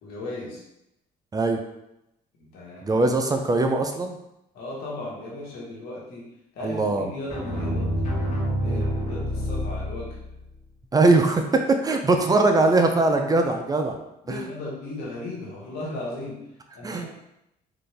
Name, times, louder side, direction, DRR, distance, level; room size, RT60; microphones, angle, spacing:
voice 1, 0.0-0.6 2.4-3.0 4.5-8.0 8.6-10.2 14.2-16.4 16.7-17.1, left 2 dB, 85° left, -4 dB, 1.3 m, -36 dB
voice 2, 2.8-4.2 6.6-7.0 8.6-8.8 10.9-14.0 14.3-14.5 16.8-17.1, right 2 dB, 25° right, 4 dB, 0.4 m, -21 dB
sound 1, 7.3-10.4, equal, 55° left, 1.3 m, -27 dB
3.9 x 2.6 x 3.3 m, 0.84 s
cardioid pair, 95°, 16 cm